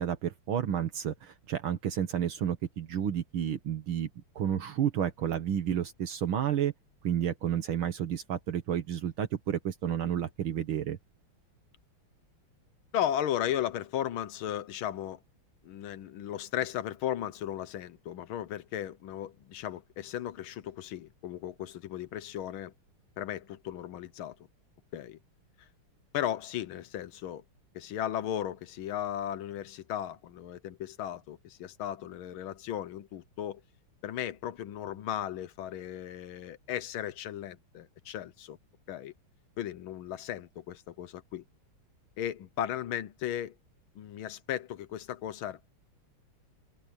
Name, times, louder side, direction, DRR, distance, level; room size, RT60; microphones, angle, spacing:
voice 1, 0.0-4.1 4.4-6.7 7.0-11.0, right 9 dB, 70° right, 2.0 m, -31 dB
voice 2, 12.9-15.2 15.6-22.7 23.2-24.4 24.9-25.2 25.6-25.7 26.1-27.4 27.7-33.6 34.0-38.6 38.9-39.1 39.6-41.4 42.2-43.5 43.9-45.8, left 11 dB, 75° left, 1.6 m, -36 dB
omnidirectional pair, 2.4 m